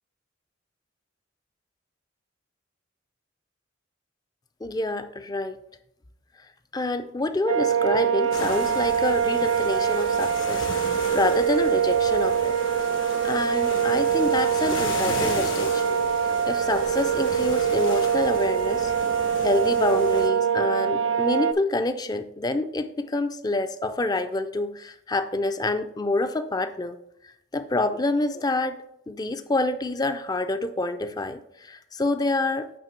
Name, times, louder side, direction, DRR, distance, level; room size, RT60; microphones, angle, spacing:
voice 1, 4.6-5.6 6.7-12.6 13.2-16.0 16.4-18.9 19.4-27.0 27.5-32.7, left 2 dB, 20° left, 10 dB, 0.4 m, -27 dB
sound 1, 7.5-21.5, right 7 dB, 75° right, 0.3 m, -24 dB
sound 2, 8.3-20.3, left 3 dB, 85° left, 1.2 m, -37 dB
8.7 x 3.2 x 4.5 m, 0.77 s
head